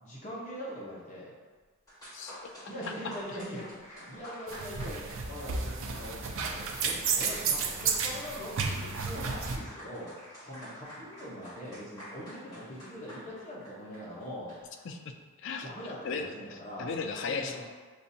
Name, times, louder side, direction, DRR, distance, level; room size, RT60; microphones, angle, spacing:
voice 1, 0.0-1.4 2.7-5.0 5.3-10.1 10.4-14.5 15.6-16.9 17.3-17.6, equal, 35° left, -7 dB, 0.9 m, -42 dB
sound 1, 1.6-1.7 1.9-14.8, equal, 15° left, 1.3 m, -48 dB
voice 2, 2.1-2.5 2.8-2.9 3.3-3.4 14.8-15.1 15.4-15.7 16.0-17.6, left 5 dB, 55° left, 5 dB, 0.4 m, -36 dB
sound 2, 4.5-9.6, right 5 dB, 60° right, 0.4 m, -32 dB
6.6 x 2.5 x 2.7 m, 1.4 s
head